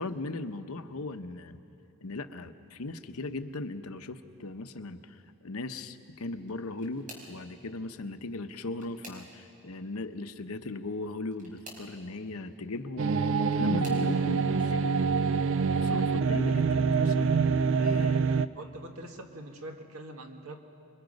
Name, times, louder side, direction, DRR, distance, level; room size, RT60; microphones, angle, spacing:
voice 1, 0.0-1.6 2.0-13.3 13.5-14.9 15.8-17.5 17.7-18.5, left 2 dB, 85° left, 8 dB, 0.9 m, -38 dB
sound 1, 6.4-7.4 8.4-9.6 11.2-11.9 13.0-14.1 14.8-15.2 15.6-15.7 17.1-17.2, right 1 dB, 35° right, 4.7 m, -50 dB
sound 2, 13.0-18.5, right 5 dB, 60° right, 0.4 m, -25 dB
voice 2, 18.6-20.6, right 1 dB, 80° right, 4 dB, 1.8 m, -44 dB
27.5 x 22.5 x 5.3 m, 2.6 s
head